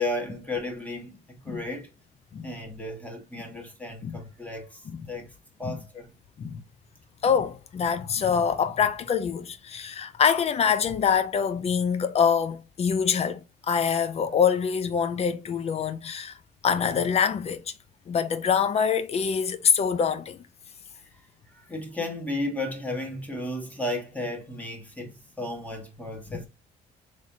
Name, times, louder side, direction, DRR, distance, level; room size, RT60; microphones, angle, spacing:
voice 1, 0.0-1.9 2.4-5.3 5.6-6.1 21.1-21.2 21.5-26.5, left 2 dB, 10° left, 1.5 m, -34 dB
voice 2, 7.2-16.4 16.6-17.7 18.1-20.4, left 7 dB, 40° left, 0.6 m, -25 dB
4.0 x 3.2 x 2.7 m
cardioid pair, 110°, 17 cm